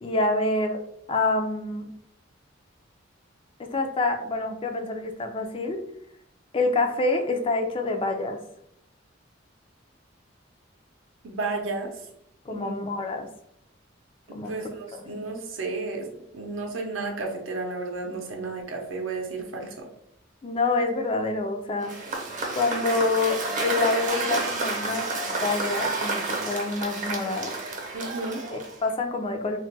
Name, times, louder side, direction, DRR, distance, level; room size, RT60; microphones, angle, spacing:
voice 1, 0.0-0.8 1.1-1.9 3.6-5.8 6.5-8.4 12.4-13.3 14.3-15.0 20.4-21.9 22.5-27.5 28.5-29.6, left 3 dB, 30° left, 4 dB, 0.4 m, -27 dB
voice 2, 11.2-11.9 12.5-12.9 14.3-19.9 27.9-28.4, right 3 dB, 80° right, 2 dB, 0.6 m, -33 dB
Cheering / Applause / Crowd, 21.8-28.9, right 3 dB, 40° right, 0.6 m, -30 dB
2.3 x 2.2 x 3.9 m, 0.73 s
head